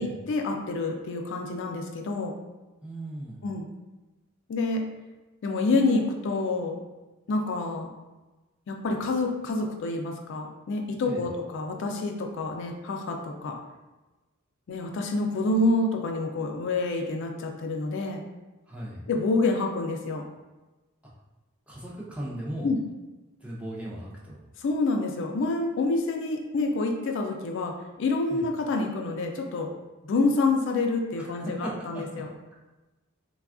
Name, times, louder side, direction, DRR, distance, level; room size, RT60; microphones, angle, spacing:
voice 1, 0.0-2.4 3.4-3.7 4.5-4.8 5.4-6.8 7.3-7.9 8.7-13.6 14.7-18.2 19.1-20.2 22.6-22.8 24.6-29.7 30.0-32.3, left 3 dB, 60° left, 3 dB, 0.3 m, -27 dB
voice 2, 2.8-3.4 11.0-11.3 18.7-19.0 21.0-21.1 21.7-22.7 23.4-24.4 28.3-28.5 31.2-32.0, right 1 dB, 5° right, -5 dB, 0.4 m, -37 dB
3.3 x 2.3 x 2.4 m, 1.1 s
head